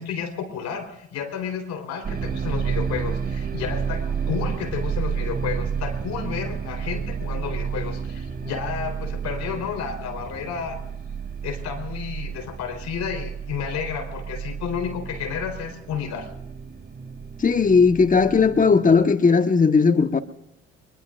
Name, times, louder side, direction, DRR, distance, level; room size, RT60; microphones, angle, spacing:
voice 1, 0.0-10.8 11.4-16.3, left 7 dB, 70° left, 4.1 m, -31 dB
sound 1, 2.0-19.0, right 6 dB, 35° right, 3.0 m, -31 dB
voice 2, 17.4-20.2, left 5 dB, 30° left, 1.3 m, -17 dB
24.0 x 22.0 x 2.6 m
supercardioid pair, 60°, 29 cm